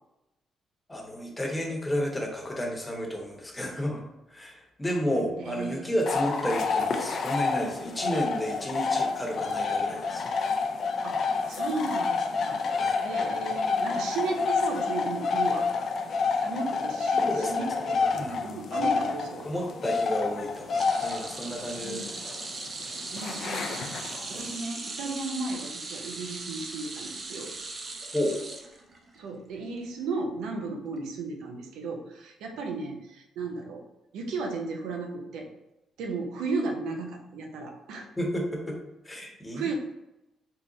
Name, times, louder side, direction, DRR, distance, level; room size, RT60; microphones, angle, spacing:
voice 1, 0.9-4.0 4.3-10.2 12.7-13.1 17.2-18.4 18.7-18.9 19.4-22.2 24.3-24.5 28.1-28.4 38.2-38.8 39.0-39.7, equal, 15° left, 0 dB, 0.9 m, -32 dB
voice 2, 5.2-5.9 11.0-12.6 13.0-15.7 16.4-19.5 21.8-22.1 23.1-27.5 29.1-33.8 34.1-35.5 36.0-38.1 39.5-39.7, right 3 dB, 90° right, 2 dB, 0.6 m, -35 dB
sound 1, 6.1-24.6, left 4 dB, 60° left, 0.4 m, -29 dB
sound 2, 20.7-29.2 29.6-29.8 31.0-31.1, right 3 dB, 40° right, 0.6 m, -39 dB
3.8 x 2.0 x 3.8 m, 0.94 s
cardioid pair, 90°, 0 cm